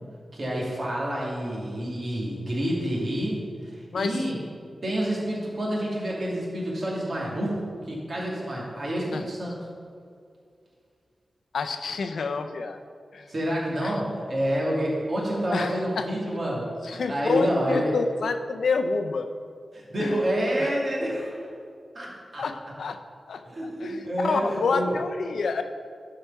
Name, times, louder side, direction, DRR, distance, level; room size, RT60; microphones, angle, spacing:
voice 1, 0.3-4.4 4.8-9.6 13.3-17.9 19.7-21.5 21.9-22.4 23.4-24.9, equal, 45° right, -5 dB, 2.6 m, -28 dB
voice 2, 3.9-4.2 9.1-9.2 11.5-12.8 13.1-13.3 13.8-13.9 15.5-16.1 16.8-19.3 20.0-20.2 20.6-20.7 22.4-23.0 23.3-23.4 23.8-25.6, left 4 dB, 90° left, 7 dB, 0.6 m, -28 dB
11.5 x 4.9 x 5.7 m, 2.3 s
wide cardioid pair, 135°, 0 cm